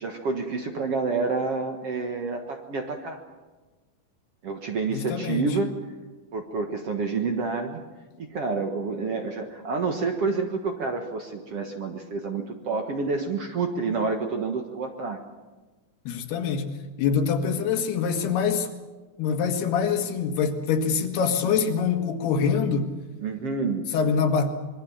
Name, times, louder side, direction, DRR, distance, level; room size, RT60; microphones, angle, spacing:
voice 1, 0.0-3.2 4.4-5.7 6.3-7.8 8.2-15.2 23.2-23.8, right 4 dB, 55° right, 4 dB, 1.9 m, -28 dB
voice 2, 4.9-5.6 16.1-16.7 17.0-18.7 19.2-22.9 23.9-24.5, left 6 dB, 90° left, 5 dB, 3.8 m, -24 dB
25.5 x 22.0 x 7.3 m, 1.3 s
omnidirectional pair, 4.4 m